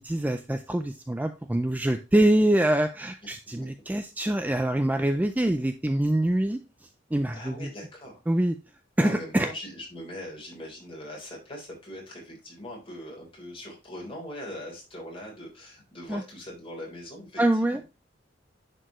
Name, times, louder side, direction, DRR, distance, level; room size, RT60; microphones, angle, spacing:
voice 1, 0.0-7.7 8.3-8.5 9.0-9.5 16.1-16.2 17.4-17.8, right 1 dB, 10° right, 8 dB, 0.3 m, -25 dB
voice 2, 7.3-8.2 9.0-17.4 17.7-17.8, left 1 dB, 30° left, -2 dB, 3.6 m, -41 dB
10.0 x 4.5 x 3.0 m, 0.31 s
head